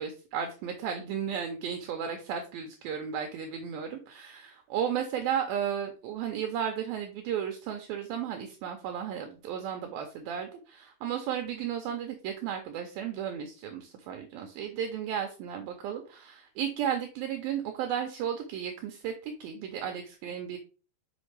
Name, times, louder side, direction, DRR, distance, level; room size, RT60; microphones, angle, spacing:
voice 1, 0.0-20.6, right 8 dB, 80° right, 5 dB, 2.1 m, -34 dB
6.2 x 5.1 x 3.3 m, 0.36 s
omnidirectional pair, 4.9 m